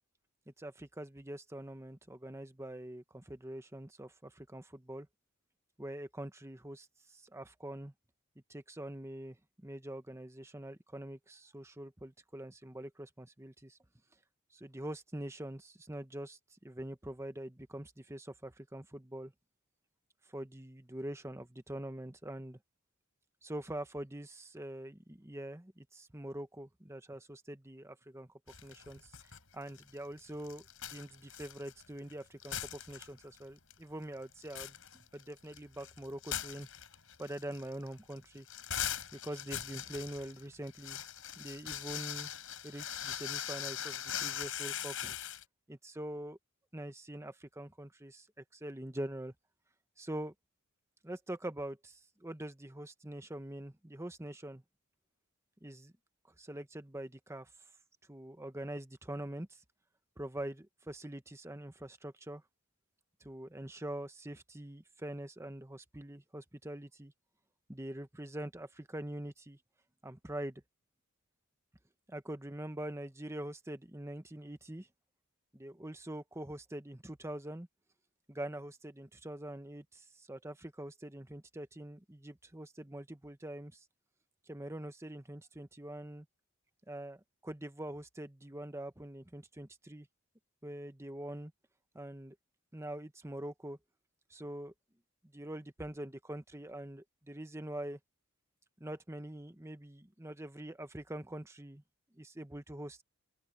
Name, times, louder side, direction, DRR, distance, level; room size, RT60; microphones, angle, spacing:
voice 1, 0.5-5.1 5.8-7.9 8.5-13.8 14.5-19.3 20.3-22.6 23.4-28.3 28.6-29.1 29.5-36.7 37.2-38.5 39.1-41.0 41.4-42.3 42.6-45.2 45.7-46.4 46.7-49.3 50.0-50.3 51.0-54.6 55.6-55.9 56.4-57.5 58.1-59.6 60.2-62.4 63.2-67.1 67.7-69.6 70.0-70.6 72.1-74.9 75.5-77.7 78.3-83.8 84.5-86.3 86.9-90.1 90.6-91.5 91.9-92.3 92.7-93.8 94.3-94.7 95.3-98.0 98.8-101.8 102.2-103.0, right 1 dB, 15° right, 1.2 m, -44 dB
sound 1, 28.5-29.4 29.7-32.1 32.4-33.4 33.7-33.8 34.2-45.4, left 10 dB, 65° left, 7.0 m, -41 dB
open air
head